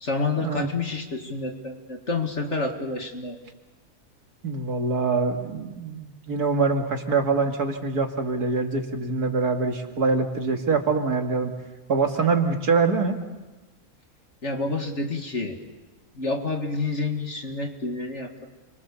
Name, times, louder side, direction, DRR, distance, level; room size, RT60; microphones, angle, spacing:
voice 1, 0.0-3.4 14.4-15.6 16.1-18.5, left 3 dB, 50° left, 4 dB, 2.3 m, -29 dB
voice 2, 4.4-11.5 11.9-13.2, right 4 dB, 85° right, 4 dB, 2.7 m, -24 dB
30.0 x 24.0 x 7.0 m, 1.2 s
omnidirectional pair, 1.6 m